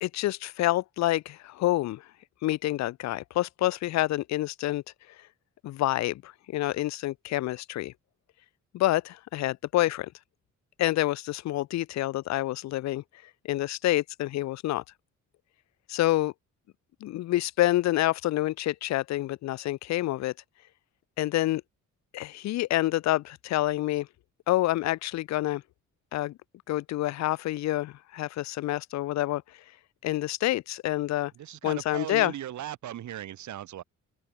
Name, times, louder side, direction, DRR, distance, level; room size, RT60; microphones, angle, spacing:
voice 1, 0.0-2.0 2.4-4.8 5.6-7.9 8.7-10.1 10.8-13.0 13.4-14.8 15.9-16.3 17.0-20.3 21.2-21.6 22.1-24.1 24.5-25.6 26.1-26.4 26.7-29.4 30.0-31.3 31.6-32.3, left 15 dB, 65° left, 0.5 m, -27 dB
voice 2, 31.4-33.8, right 12 dB, 70° right, 2.5 m, -37 dB
open air
cardioid pair, 90°, 30 cm